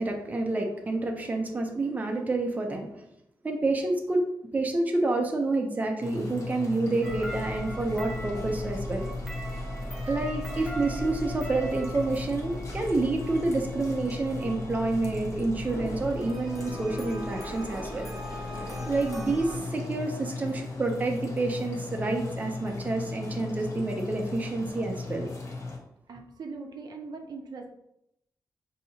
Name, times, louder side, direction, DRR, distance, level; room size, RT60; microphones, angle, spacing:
voice 1, 0.0-3.0 3.4-4.3 4.5-9.1 10.1-18.1 18.9-25.3, right 2 dB, 20° right, 2 dB, 0.5 m, -28 dB
sound 1, 6.0-25.8, left 3 dB, 40° left, 0.9 m, -37 dB
sound 2, 7.0-19.6, equal, 5° right, 0.9 m, -39 dB
voice 2, 26.1-27.7, right 4 dB, 65° right, 3 dB, 0.5 m, -41 dB
5.8 x 2.7 x 2.8 m, 0.80 s
wide cardioid pair, 160°, 7 cm